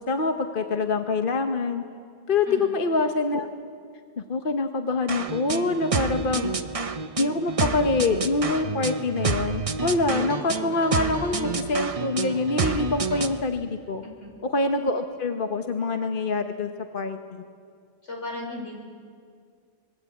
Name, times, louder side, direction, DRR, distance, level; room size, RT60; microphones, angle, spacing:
voice 1, 0.0-1.8 2.3-3.5 4.2-6.5 7.2-14.0 14.5-17.4, left 3 dB, 45° left, 5 dB, 1.2 m, -25 dB
voice 2, 2.5-2.8 14.0-14.4 18.0-18.8, left 2 dB, 75° left, 0 dB, 5.5 m, -36 dB
sound 1, 5.1-13.4, right 4 dB, 35° right, 0.7 m, -29 dB
24.5 x 22.0 x 8.5 m, 2.1 s
omnidirectional pair, 1.3 m